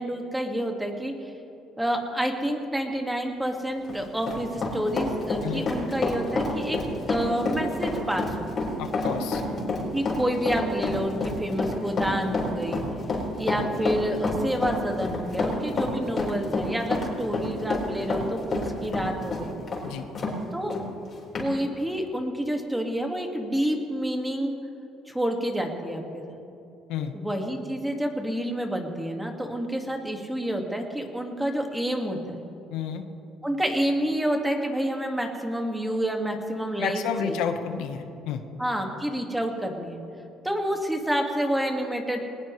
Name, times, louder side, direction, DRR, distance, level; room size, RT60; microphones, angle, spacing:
voice 1, 0.0-1.3 1.8-6.8 7.1-8.5 9.9-12.8 13.4-19.5 20.5-20.8 21.4-24.6 25.1-26.4 27.1-32.4 33.4-37.4 38.6-40.0 40.4-42.2, equal, 5° right, 2 dB, 1.9 m, -28 dB
Run, 3.7-20.4 20.7-20.8 21.3-21.5, left 2 dB, 40° left, 4.9 m, -28 dB
voice 2, 8.8-9.4 19.8-20.1 26.9-27.1 32.7-33.0 36.8-38.4, left 8 dB, 85° left, 6 dB, 1.2 m, -30 dB
21.0 x 19.5 x 3.2 m, 2.8 s
cardioid pair, 115°, 0 cm